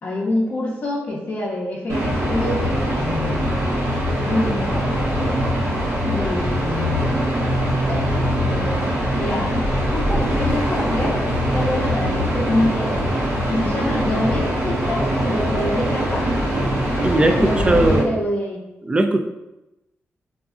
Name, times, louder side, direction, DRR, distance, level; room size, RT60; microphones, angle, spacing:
voice 1, 0.0-3.6 4.2-5.4 6.0-7.3 7.7-9.6 9.9-12.9 13.5-16.3 17.2-18.6, left 1 dB, 50° left, -5 dB, 0.6 m, -26 dB
sound 1, 1.9-18.0, equal, 70° right, 0.9 m, -22 dB
voice 2, 17.0-18.2 18.8-19.2, right 1 dB, 20° right, 6 dB, 0.3 m, -18 dB
3.9 x 2.4 x 2.4 m, 0.96 s
cardioid pair, 70°, 5 cm